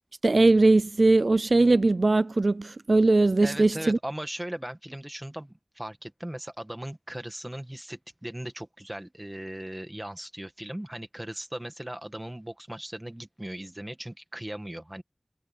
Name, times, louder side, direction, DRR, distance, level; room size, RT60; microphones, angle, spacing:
voice 1, 0.2-4.0, right 2 dB, 80° right, 0.3 m, -20 dB
voice 2, 3.4-15.0, right 1 dB, 20° right, 2.0 m, -38 dB
wide cardioid pair, 40°, 0 cm